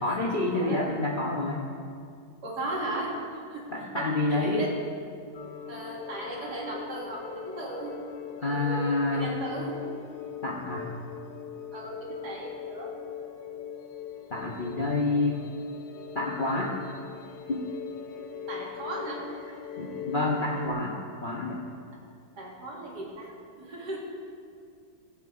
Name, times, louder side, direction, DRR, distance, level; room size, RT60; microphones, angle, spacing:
voice 1, 0.0-1.7 3.7-4.6 8.4-9.4 10.4-10.9 14.3-15.4 16.1-16.7 17.5-17.6 19.8-21.6, left 2 dB, 35° left, -4 dB, 1.0 m, -28 dB
voice 2, 2.4-3.1 3.5-3.6 4.0-4.7 5.7-7.9 8.4-9.7 11.7-12.9 18.5-19.2 22.4-23.3 23.6-24.0, right 1 dB, 65° right, -3 dB, 2.6 m, -36 dB
sound 1, 5.3-20.7, left 8 dB, 90° left, 1.5 m, -41 dB
21.0 x 7.5 x 3.8 m, 2.3 s
omnidirectional pair, 1.9 m